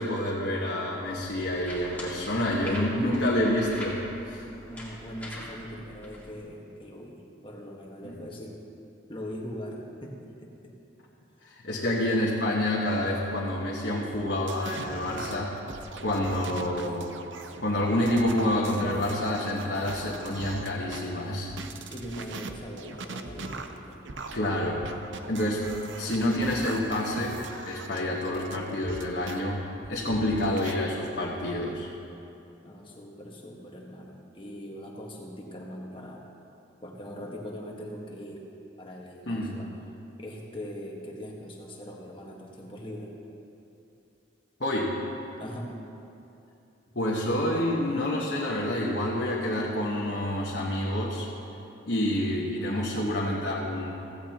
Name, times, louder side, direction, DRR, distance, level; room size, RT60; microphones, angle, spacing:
voice 1, 0.0-4.4 8.0-8.1 11.4-15.6 16.0-17.1 17.6-21.5 24.3-24.9 25.3-25.7 26.0-31.9 39.3-39.5 44.6-44.9 46.9-51.3 51.9-53.9, left 1 dB, 60° left, -5 dB, 1.4 m, -28 dB
sound 1, 1.1-6.4, left 1 dB, 10° left, 2.1 m, -43 dB
voice 2, 4.7-8.6 9.1-10.8 21.9-24.0 32.6-36.2 36.8-38.4 38.8-39.7 40.2-43.1 45.4-45.7, equal, 25° left, -1 dB, 1.5 m, -41 dB
sound 2, 14.1-21.0 21.5-29.4 29.8-30.7, right 3 dB, 80° right, 0.8 m, -41 dB
15.5 x 15.5 x 3.0 m, 2.8 s
head